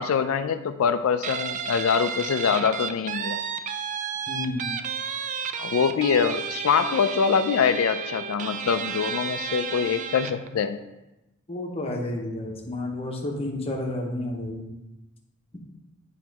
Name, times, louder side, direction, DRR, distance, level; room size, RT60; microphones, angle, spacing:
voice 1, 0.0-3.4 5.6-10.8, left 6 dB, 70° left, 9 dB, 0.4 m, -24 dB
Guitar, 1.2-10.5, right 6 dB, 35° right, 0.3 m, -32 dB
voice 2, 4.3-4.7 11.5-14.7, left 1 dB, 30° left, 0 dB, 1.0 m, -31 dB
8.5 x 3.1 x 4.7 m, 0.99 s
head